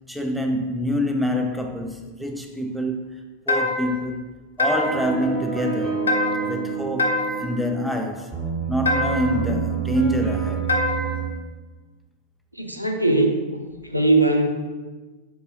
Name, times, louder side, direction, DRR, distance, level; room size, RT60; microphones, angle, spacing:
voice 1, 0.1-3.1 3.5-4.3 4.6-6.0 6.4-8.3 8.7-10.7, equal, ahead, 0.4 m, -26 dB
sound 1, 3.5-4.0 4.6-5.1 6.1-6.6 7.0-7.5 8.8-9.4 10.7-11.2, left 2 dB, 75° left, 0.4 m, -24 dB
sound 2, 4.8-11.3, right 6 dB, 35° right, 1.5 m, -28 dB
voice 2, 12.6-13.4 13.8-14.6, right 2 dB, 90° right, 0.4 m, -20 dB
4.6 x 2.6 x 2.7 m
figure-of-eight pair, 90°, 0 cm